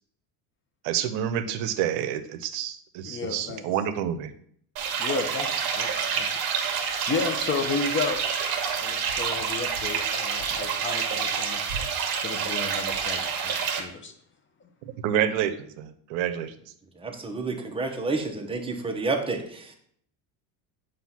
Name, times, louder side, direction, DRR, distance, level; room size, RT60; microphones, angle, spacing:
voice 1, 0.8-4.3 15.0-16.5, right 10 dB, 85° right, 10 dB, 0.7 m, -28 dB
voice 2, 3.0-3.6 5.0-5.5 5.7-6.3 6.6-8.2 8.8-11.8 12.2-14.1, left 5 dB, 25° left, 6 dB, 0.7 m, -32 dB
sound 1, 4.8-13.8, right 6 dB, 55° right, 1.3 m, -28 dB
voice 3, 17.0-19.7, right 3 dB, 10° right, 2 dB, 0.8 m, -30 dB
7.7 x 2.6 x 5.6 m, 0.64 s
cardioid pair, 135°, 44 cm